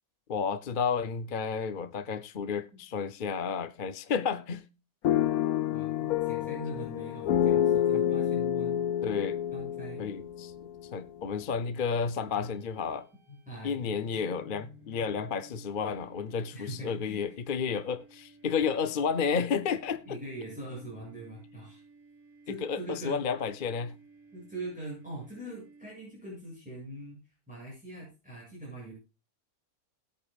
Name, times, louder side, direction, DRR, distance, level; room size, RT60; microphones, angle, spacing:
voice 1, 0.3-4.7 8.3-8.4 9.0-9.4 10.0-10.5 10.9-13.1 13.6-20.2 22.6-23.9, left 6 dB, 45° left, 0.8 m, -31 dB
sound 1, 5.0-11.1, left 10 dB, 90° left, 1.2 m, -28 dB
voice 2, 5.7-8.8 9.5-10.1 13.3-13.9 16.5-17.6 20.1-21.8 22.4-23.2 24.3-27.2 27.5-29.0, right 2 dB, 5° right, 7.5 m, -42 dB
sound 2, 12.4-26.3, right 2 dB, 15° left, 7.6 m, -56 dB
19.5 x 8.7 x 2.4 m
omnidirectional pair, 1.5 m